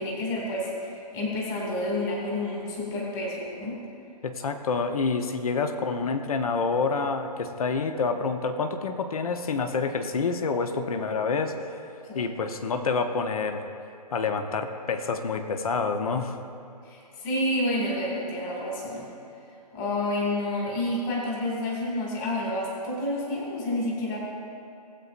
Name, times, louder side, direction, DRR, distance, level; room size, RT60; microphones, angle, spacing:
voice 1, 0.0-3.8 12.1-12.2 16.8-19.1 19.7-24.2, left 1 dB, 30° left, -3 dB, 2.2 m, -29 dB
voice 2, 4.2-11.6 12.1-13.7 14.1-16.4, left 4 dB, 60° left, 7 dB, 0.9 m, -27 dB
19.0 x 8.2 x 2.5 m, 2.6 s
figure-of-eight pair, 140°, 21 cm